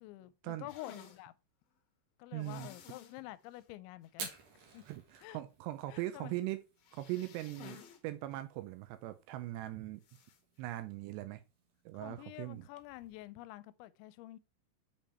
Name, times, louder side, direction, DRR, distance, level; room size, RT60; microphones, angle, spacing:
voice 1, 0.0-1.3 2.2-4.3 4.7-4.8 5.2-5.4 5.9-6.4 11.9-14.4, left 16 dB, 85° left, 2.9 m, -48 dB
sound 1, 0.7-1.2 2.4-3.2 3.5-3.6 4.0-4.1 6.8-8.0 8.3-8.4 10.0-10.4, left 8 dB, 65° left, 2.6 m, -53 dB
voice 2, 2.3-2.7 4.9-6.6 6.9-10.0 10.6-11.4 11.9-12.7, right 16 dB, 85° right, 2.5 m, -40 dB
Fire, 4.1-13.3, right 5 dB, 55° right, 2.9 m, -54 dB
7.1 x 5.2 x 4.3 m
omnidirectional pair, 5.3 m